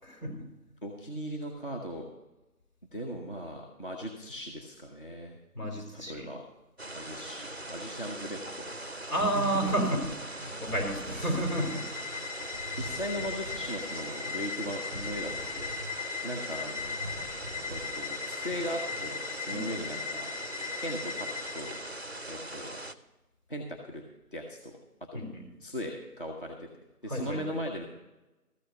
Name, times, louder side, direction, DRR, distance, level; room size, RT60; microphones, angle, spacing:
voice 1, 0.0-0.5 5.5-6.3 9.1-11.8 19.5-19.7 25.1-25.5 27.1-27.4, right 1 dB, 75° left, 1 dB, 4.5 m, -31 dB
voice 2, 0.8-2.1 2.9-5.4 5.9-6.4 6.9-8.7 9.2-9.7 11.1-11.4 12.7-15.7 16.2-17.0 17.7-20.3 20.8-21.3 21.5-21.8 22.3-22.8 23.5-24.0 24.3-24.8 25.1-25.2 25.6-26.7 27.0-27.9, equal, 35° left, 0 dB, 1.0 m, -38 dB
sound 1, 6.8-22.9, right 1 dB, 45° right, 0.5 m, -41 dB
sound 2, 10.7-19.1, equal, 5° left, 1.7 m, -46 dB
sound 3, 11.4-21.9, left 6 dB, 50° left, 2.0 m, -39 dB
13.5 x 6.4 x 6.7 m, 1.0 s
figure-of-eight pair, 170°, 47 cm